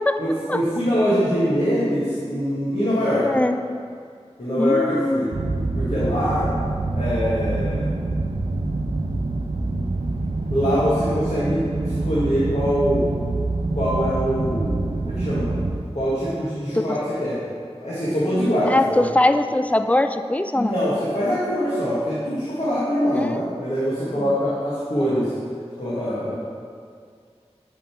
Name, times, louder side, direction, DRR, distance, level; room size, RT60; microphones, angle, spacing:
voice 1, 0.2-3.3 4.4-5.3 5.8-6.5 6.9-7.9 10.5-13.1 13.7-14.8 15.0-15.5 15.9-17.4 17.8-19.0 20.5-25.3 25.8-26.3, equal, 75° left, -11 dB, 1.8 m, -23 dB
voice 2, 3.2-3.6 4.6-5.3 16.7-17.0 18.7-20.8 23.1-23.4 24.0-24.4, left 1 dB, 10° left, 9 dB, 0.3 m, -21 dB
sound 1, 5.3-15.8, right 2 dB, 70° right, 0.5 m, -26 dB
10.5 x 3.7 x 4.5 m, 2.1 s
wide cardioid pair, 45°, 11 cm